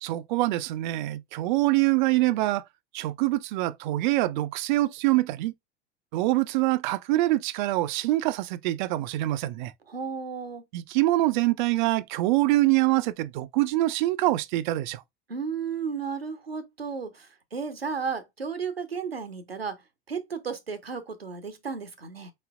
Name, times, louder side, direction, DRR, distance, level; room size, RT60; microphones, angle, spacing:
voice 1, 0.0-2.6 2.9-5.5 6.1-9.7 10.7-15.0, right 17 dB, 55° right, 0.4 m, -25 dB
voice 2, 9.9-10.6 15.3-19.8 20.1-22.3, right 5 dB, 85° right, 0.7 m, -33 dB
4.1 x 3.7 x 2.4 m
figure-of-eight pair, 75°, 30 cm